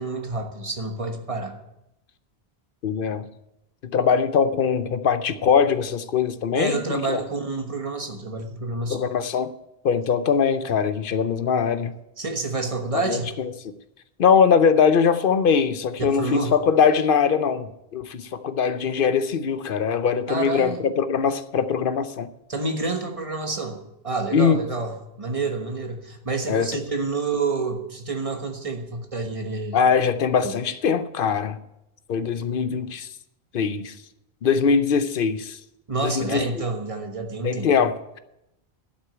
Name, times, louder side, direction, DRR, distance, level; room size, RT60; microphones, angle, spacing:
voice 1, 0.0-1.6 6.5-9.0 12.2-13.3 16.0-16.5 20.3-20.8 22.5-29.8 30.4-30.5 35.9-37.9, right 3 dB, 35° right, 4 dB, 1.4 m, -28 dB
voice 2, 2.8-3.3 3.8-7.2 8.9-9.5 9.8-11.9 12.9-13.7 14.2-22.3 24.3-24.6 26.5-26.7 29.7-31.6 32.1-33.1 33.5-33.9 34.4-35.6 36.0-36.4 37.4-38.2, left 6 dB, 60° left, 12 dB, 0.8 m, -22 dB
11.5 x 6.3 x 8.9 m, 0.87 s
omnidirectional pair, 1.0 m